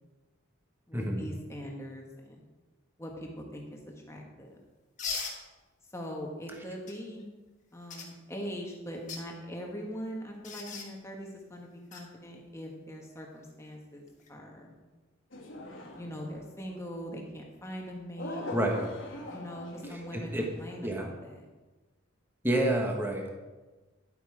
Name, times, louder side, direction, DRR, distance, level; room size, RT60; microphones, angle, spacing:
voice 1, 0.9-2.4 3.0-4.6 5.9-7.3 7.7-14.7 16.0-18.4 19.3-20.3 20.6-21.4, equal, 15° left, 0 dB, 1.5 m, -41 dB
sound 1, 5.0-5.4 6.9-7.0 7.9-8.1 8.9-9.2 10.4-10.9 11.9-12.0 14.1-14.3, left 5 dB, 35° left, 1.5 m, -37 dB
sound 2, 15.3-16.5 18.2-20.7, left 1 dB, 55° left, 1.8 m, -42 dB
voice 2, 18.5-18.9 19.9-20.5 20.8-21.1 22.4-23.3, right 1 dB, 10° right, 1 dB, 1.3 m, -29 dB
11.0 x 8.0 x 5.0 m, 1.2 s
head